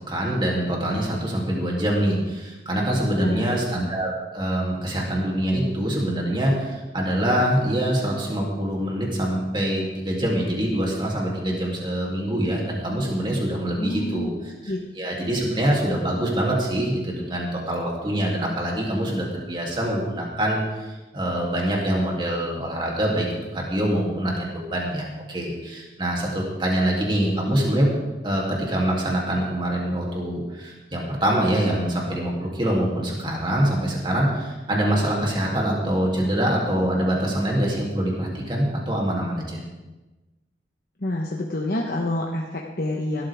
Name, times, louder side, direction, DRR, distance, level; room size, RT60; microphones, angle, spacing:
voice 1, 0.1-27.9 28.2-39.6, right 1 dB, 25° right, -2 dB, 3.0 m, -24 dB
voice 2, 3.0-3.6 13.8-14.3 14.7-14.8 41.0-43.3, left 1 dB, 55° left, -1 dB, 1.2 m, -28 dB
17.5 x 13.0 x 3.6 m, 1.1 s
head